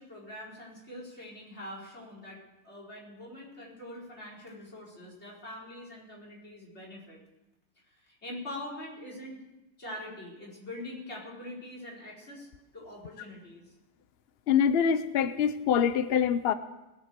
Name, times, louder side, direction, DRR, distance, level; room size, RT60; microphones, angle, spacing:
voice 1, 0.0-7.2 8.0-9.4 9.8-12.5 12.7-13.6, left 1 dB, 40° left, -5 dB, 4.9 m, -43 dB
voice 2, 14.5-16.5, left 8 dB, 75° left, 12 dB, 0.5 m, -25 dB
20.5 x 7.4 x 6.7 m, 1.0 s
omnidirectional pair, 1.8 m